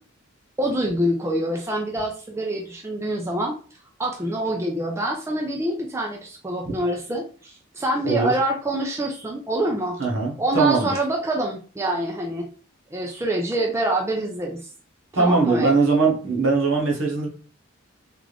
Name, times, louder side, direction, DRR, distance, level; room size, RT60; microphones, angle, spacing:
voice 1, 0.6-3.6 4.0-10.0 10.4-12.5 12.9-14.7 15.1-15.8, right 1 dB, 15° right, 1 dB, 0.4 m, -26 dB
voice 2, 10.0-10.9 15.1-17.3, right 4 dB, 70° right, -2 dB, 1.2 m, -20 dB
3.5 x 2.5 x 3.3 m, 0.40 s
head